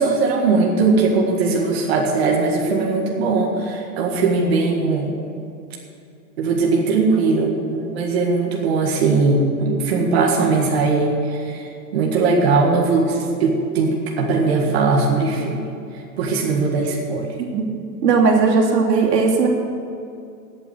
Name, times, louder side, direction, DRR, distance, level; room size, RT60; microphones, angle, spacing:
voice 1, 0.0-5.2 6.4-15.6 16.2-17.3, right 3 dB, 40° right, -1 dB, 1.8 m, -19 dB
voice 2, 17.4-17.7 18.0-19.5, right 4 dB, 90° right, -1 dB, 2.9 m, -17 dB
14.0 x 8.6 x 7.9 m, 2.5 s
supercardioid pair, 175°, 48 cm